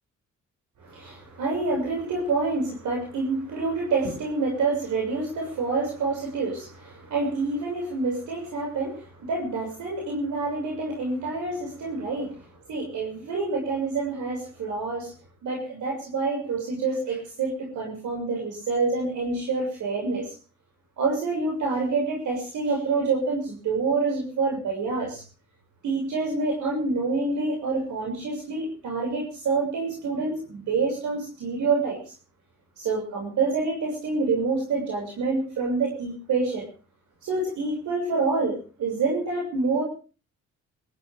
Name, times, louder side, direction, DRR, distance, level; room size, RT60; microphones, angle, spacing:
voice 1, 0.8-12.4 12.7-15.1 15.4-20.2 21.0-25.2 25.8-32.0 32.8-36.6 37.2-39.8, right 3 dB, 75° right, 0 dB, 6.9 m, -27 dB
22.0 x 15.0 x 3.7 m, 0.36 s
cardioid pair, 90°, 30 cm